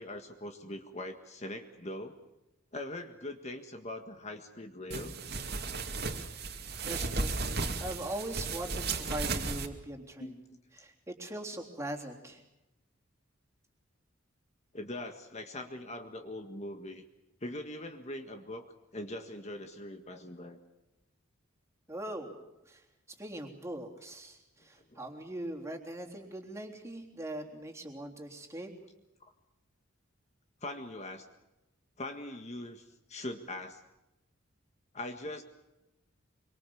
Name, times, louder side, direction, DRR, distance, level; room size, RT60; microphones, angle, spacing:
voice 1, 0.0-2.2 2.7-5.1 10.2-10.4 14.7-17.0 17.4-18.7 18.9-20.6 24.9-25.0 30.6-31.3 32.0-33.8 34.9-35.4, left 1 dB, 35° left, 5 dB, 1.8 m, -41 dB
sound 1, 4.9-9.7, right 3 dB, 55° right, 2.4 m, -35 dB
voice 2, 6.9-10.4 10.8-12.4 21.9-22.4 22.7-22.8 23.2-28.7, right 1 dB, 15° right, 1 dB, 3.5 m, -41 dB
26.0 x 24.5 x 7.1 m, 0.95 s
head